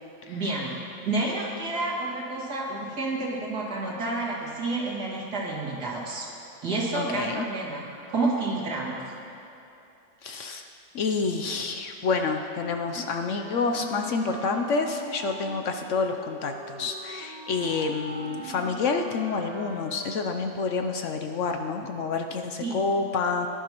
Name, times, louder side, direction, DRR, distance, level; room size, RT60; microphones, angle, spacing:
voice 1, 0.3-0.7 1.0-6.3 6.6-7.8 8.1-9.0 22.6-22.9, right 2 dB, 85° right, -4 dB, 2.7 m, -29 dB
voice 2, 6.9-7.5 10.2-10.6 10.9-23.5, left 4 dB, 65° left, 5 dB, 0.8 m, -28 dB
Wind instrument woodwind instrument, 13.3-20.4, left 1 dB, 15° right, 1.3 m, -40 dB
19.0 x 11.0 x 3.0 m, 2.8 s
omnidirectional pair, 1.7 m